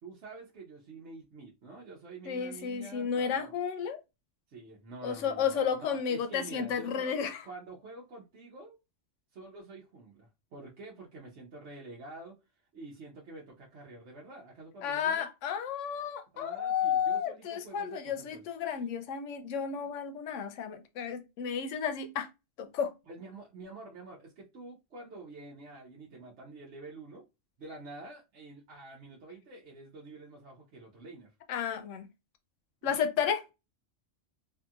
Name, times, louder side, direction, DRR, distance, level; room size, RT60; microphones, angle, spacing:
voice 1, 0.0-3.5 4.5-8.8 9.3-12.4 12.7-15.3 16.3-18.4 23.1-27.2 27.6-31.3 32.8-32.9, right 2 dB, 70° right, 1.0 m, -48 dB
voice 2, 2.3-4.0 5.0-7.4 14.8-22.3 22.6-22.9 31.5-32.1 32.8-33.5, left 7 dB, 90° left, 0.9 m, -32 dB
2.8 x 2.6 x 2.3 m
omnidirectional pair, 1.2 m